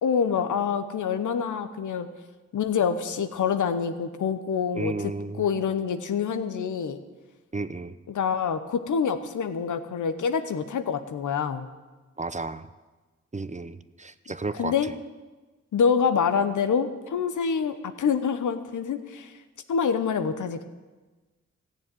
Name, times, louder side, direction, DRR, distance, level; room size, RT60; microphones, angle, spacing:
voice 1, 0.0-2.1 2.5-5.1 5.4-7.0 8.1-11.7 14.6-14.9 15.7-19.3 19.7-20.6, left 6 dB, 90° left, 10 dB, 0.9 m, -26 dB
voice 2, 4.7-5.5 7.5-8.0 12.2-12.7 13.3-14.9, right 3 dB, 25° right, 13 dB, 0.8 m, -33 dB
14.5 x 7.2 x 9.4 m, 1.3 s
cardioid pair, 40°, 29 cm